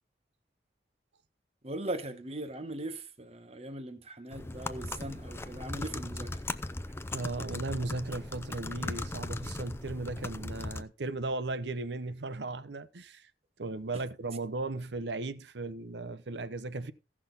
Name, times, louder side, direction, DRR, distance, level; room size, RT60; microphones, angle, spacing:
voice 1, 1.6-6.4, right 1 dB, 35° right, 1.1 m, -39 dB
sound 1, 4.3-10.8, left 2 dB, 15° left, 0.5 m, -38 dB
voice 2, 7.1-13.3 13.6-16.9, right 2 dB, 80° right, 0.8 m, -36 dB
15.5 x 6.1 x 3.9 m
head